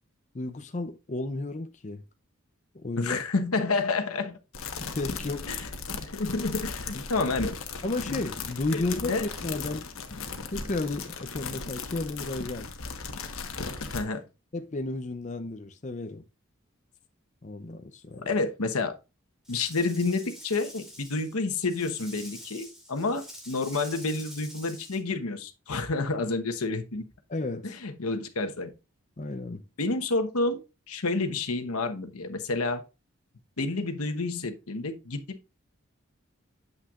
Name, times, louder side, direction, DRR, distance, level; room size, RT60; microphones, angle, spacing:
voice 1, 0.3-2.0 2.8-3.2 4.8-5.6 6.9-7.0 7.8-9.9 10.5-12.7 14.5-16.2 17.4-18.3 27.3-27.8 29.2-29.6, left 2 dB, 35° left, 0.6 m, -33 dB
voice 2, 3.0-4.4 5.5-5.6 6.0-7.6 8.1-8.2 8.7-9.3 13.9-14.2 18.3-19.0 19.5-27.0 27.6-28.7 29.8-30.6 30.9-32.8 33.6-35.4, left 3 dB, 90° left, 1.1 m, -29 dB
sound 1, 4.5-14.0, left 4 dB, 70° left, 1.2 m, -37 dB
Rattle / Rattle (instrument), 19.4-25.0, equal, ahead, 2.4 m, -46 dB
8.8 x 7.8 x 2.4 m
head